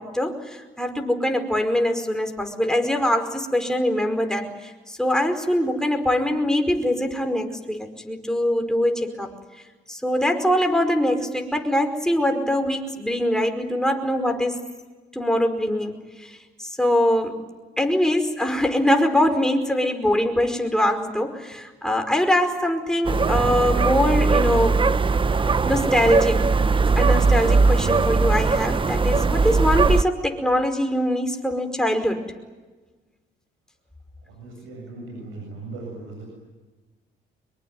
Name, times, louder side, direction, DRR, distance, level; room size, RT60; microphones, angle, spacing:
voice 1, 0.0-9.3 9.9-14.6 15.1-17.4 17.8-24.8 25.6-26.5 27.0-32.2, left 1 dB, 5° left, 4 dB, 5.0 m, -23 dB
sound 1, 23.1-30.0, right 4 dB, 25° right, 0.8 m, -20 dB
voice 2, 34.2-36.3, right 3 dB, 90° right, 1 dB, 7.8 m, -38 dB
25.5 x 22.5 x 9.3 m, 1.3 s
cardioid pair, 90°, 20 cm